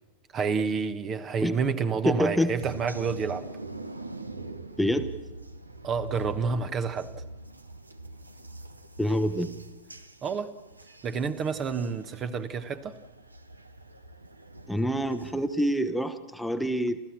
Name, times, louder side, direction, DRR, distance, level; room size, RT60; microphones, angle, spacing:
voice 1, 0.3-3.5 5.8-7.1 10.2-10.5 11.0-13.0, right 5 dB, 30° right, 1.2 m, -29 dB
voice 2, 2.0-2.5 4.8-5.1 9.0-9.5 14.7-17.0, equal, ahead, 1.0 m, -26 dB
sound 1, 2.6-15.6, right 2 dB, 80° right, 1.1 m, -43 dB
29.0 x 14.5 x 7.4 m
figure-of-eight pair, 90°, 0 cm